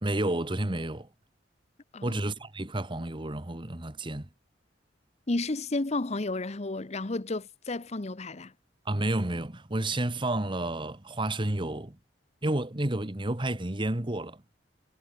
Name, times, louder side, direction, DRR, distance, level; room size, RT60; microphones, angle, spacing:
voice 1, 0.0-1.1 2.0-4.3 8.8-12.0 12.4-14.4, right 1 dB, 25° right, 1.5 m, -30 dB
voice 2, 5.3-8.5, left 2 dB, 35° left, 0.9 m, -32 dB
head